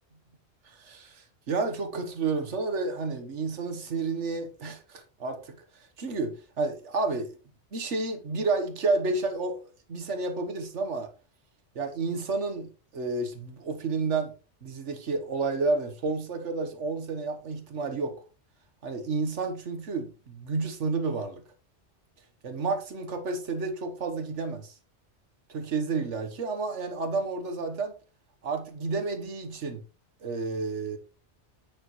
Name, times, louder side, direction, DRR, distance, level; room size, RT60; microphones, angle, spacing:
voice 1, 0.6-5.6 6.0-7.3 7.7-9.6 9.9-11.1 11.7-14.3 14.6-18.2 18.8-21.4 22.4-24.7 25.5-27.9 28.4-29.8 30.2-31.0, right 3 dB, 90° right, 1.6 m, -30 dB
8.9 x 6.8 x 3.1 m
omnidirectional pair, 1.2 m